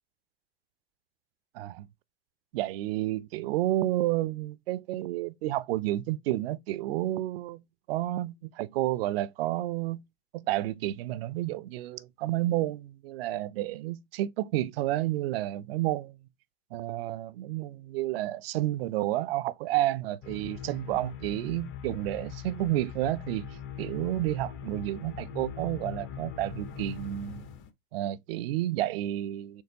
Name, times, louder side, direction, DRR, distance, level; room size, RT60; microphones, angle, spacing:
voice 1, 1.5-1.9 2.5-7.6 7.9-10.0 10.3-16.2 16.7-23.5 23.8-27.4 27.9-29.6, right 15 dB, 65° right, 0.5 m, -30 dB
sound 1, 20.2-27.7, left 8 dB, 35° left, 0.7 m, -41 dB
4.6 x 3.0 x 2.6 m
hypercardioid pair, 90°, 33 cm